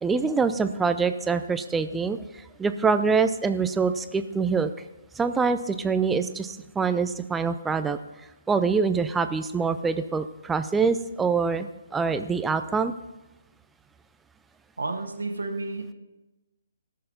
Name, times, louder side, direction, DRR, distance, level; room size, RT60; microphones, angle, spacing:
voice 1, 0.0-2.2 2.6-4.7 5.2-8.0 8.5-12.9, right 5 dB, 10° right, 10 dB, 0.5 m, -25 dB
voice 2, 14.8-15.9, right 3 dB, 75° right, 5 dB, 1.5 m, -31 dB
19.0 x 6.6 x 4.0 m, 1.0 s
figure-of-eight pair, 140°, 0 cm